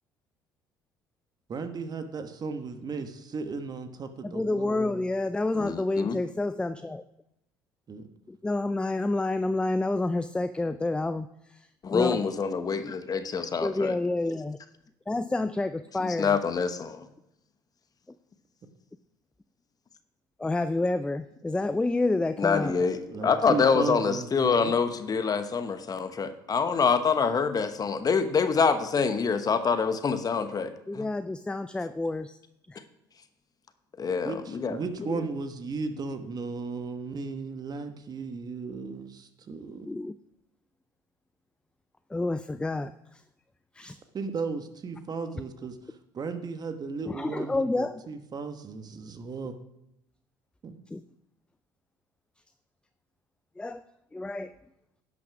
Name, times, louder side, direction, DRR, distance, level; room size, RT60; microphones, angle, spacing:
voice 1, 1.5-5.1 7.9-8.0 23.1-24.7 34.2-39.9 44.1-45.8 46.1-49.5 50.6-50.7, right 4 dB, 40° right, 8 dB, 1.2 m, -35 dB
voice 2, 4.2-7.0 8.3-11.3 11.9-12.2 13.6-14.6 15.1-16.4 20.4-22.7 30.9-32.4 32.7-32.8 39.9-40.1 42.1-42.9 43.8-44.0 47.1-48.0 50.9-51.0 53.6-53.8 54.1-54.5, left 2 dB, 10° left, 12 dB, 0.4 m, -29 dB
voice 3, 5.6-6.2 11.8-14.0 16.0-17.1 22.4-31.1 34.0-34.8, left 5 dB, 35° left, 10 dB, 1.0 m, -26 dB
10.5 x 5.9 x 5.9 m, 0.85 s
supercardioid pair, 80°, 11 cm